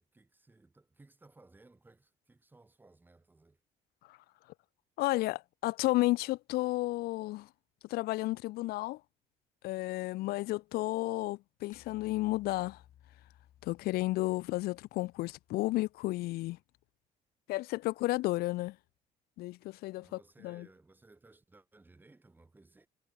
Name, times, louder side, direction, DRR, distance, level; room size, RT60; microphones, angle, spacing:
voice 1, 0.0-3.6 20.0-22.9, right 2 dB, 10° right, 6.5 m, -61 dB
voice 2, 5.0-7.5 7.9-9.0 9.6-12.8 13.6-16.6 17.5-18.7 19.4-20.7, left 19 dB, 80° left, 0.5 m, -32 dB
sound 1, 11.7-16.1, left 12 dB, 55° left, 6.2 m, -62 dB
cardioid pair, 150°, 16 cm